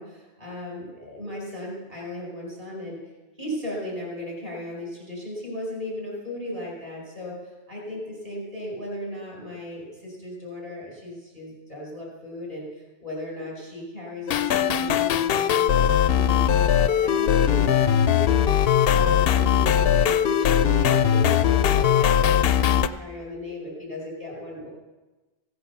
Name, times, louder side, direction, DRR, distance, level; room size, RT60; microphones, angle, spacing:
voice 1, 0.0-3.0 3.4-24.7, left 1 dB, 45° right, -4 dB, 5.0 m, -36 dB
sound 1, 14.3-22.9, left 9 dB, 65° left, 0.7 m, -20 dB
16.0 x 7.8 x 6.8 m, 1.2 s
omnidirectional pair, 1.2 m